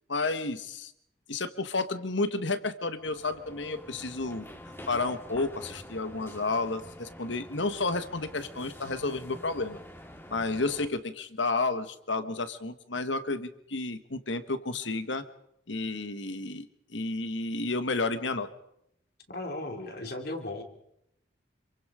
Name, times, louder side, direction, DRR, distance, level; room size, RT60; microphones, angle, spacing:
voice 1, 0.1-0.9 1.3-4.5 4.9-9.8 10.3-15.2 15.7-18.5, left 3 dB, 80° left, 11 dB, 1.5 m, -31 dB
sound 1, 2.9-10.9, equal, 15° left, 2.1 m, -47 dB
voice 2, 19.3-20.6, left 2 dB, 55° left, 4 dB, 3.1 m, -36 dB
27.0 x 24.0 x 5.0 m, 0.78 s
head